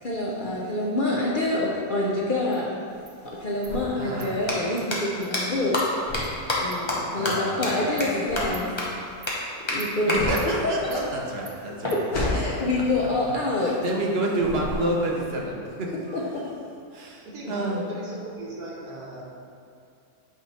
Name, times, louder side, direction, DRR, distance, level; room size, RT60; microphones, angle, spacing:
voice 1, 0.0-2.8 3.2-5.9 6.6-8.7 9.7-10.2 10.6-10.7 11.9-13.8 16.1-16.5, left 2 dB, 50° left, -5 dB, 0.6 m, -26 dB
Insect, 2.5-2.6 3.1-3.2 3.6-3.8 4.2-4.3 4.8-4.9 5.2-5.3 5.8-5.9 6.2-6.3 6.7-6.8 7.3-7.4 8.0-8.1 8.5-8.7 9.2-9.4 9.8-9.9 10.4-10.5 10.9-11.0 11.5-11.6 11.9-12.0, right 7 dB, 65° right, 0.6 m, -43 dB
sound 1, 2.9-14.1 14.4-15.2, left 2 dB, 70° left, 1.7 m, -34 dB
voice 2, 4.0-4.5 7.1-8.0 10.1-11.9 13.6-16.5 16.9-17.8, right 1 dB, 50° right, -2 dB, 1.0 m, -29 dB
sound 2, 4.4-4.5 4.9-5.0 5.3-5.4 5.7-5.8 6.1-6.2 6.5-6.6 6.9-7.0 7.3-7.4 7.6-7.7 8.0-8.1 8.4-8.5 8.8-8.9 9.3-9.4 9.7-9.8 10.1-10.2 11.8-12.9, left 2 dB, 25° left, 0.8 m, -28 dB
voice 3, 17.2-19.2, right 1 dB, 85° right, -5 dB, 1.7 m, -38 dB
8.3 x 3.5 x 4.1 m, 2.5 s
omnidirectional pair, 1.6 m